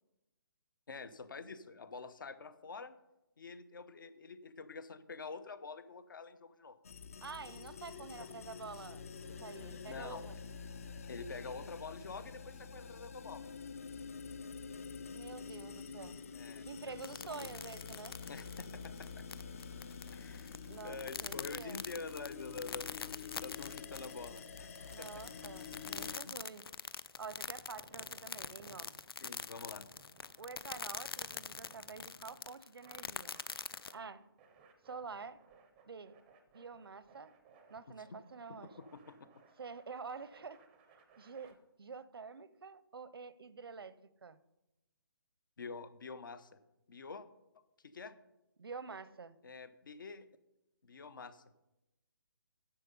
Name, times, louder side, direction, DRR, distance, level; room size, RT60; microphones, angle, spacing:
voice 1, 0.9-3.0 3.4-6.8 8.1-8.3 9.7-10.3 11.1-13.4 16.3-17.5 18.3-19.3 20.1-25.2 26.2-26.4 29.2-29.9 37.9-38.0 38.6-39.2 45.6-46.5 46.9-47.3 47.8-48.2 49.4-50.3 50.8-51.4, left 4 dB, 60° left, 14 dB, 0.8 m, -47 dB
sound 1, 6.8-26.2, left 5 dB, 40° left, 0.5 m, -48 dB
voice 2, 7.2-10.4 15.1-16.2 16.6-18.2 20.7-21.8 24.9-26.6 27.2-28.9 30.4-33.4 33.9-34.2 34.8-35.4 35.8-36.1 36.5-37.3 37.7-38.7 39.6-40.6 41.2-44.4 48.6-49.4, right 5 dB, 85° right, 16 dB, 0.7 m, -48 dB
sound 2, 17.0-33.9, left 6 dB, 85° left, 0.5 m, -44 dB
sound 3, 24.5-41.5, right 4 dB, 10° right, 0.6 m, -64 dB
10.5 x 7.3 x 5.4 m, 0.94 s
hypercardioid pair, 170°, 12 cm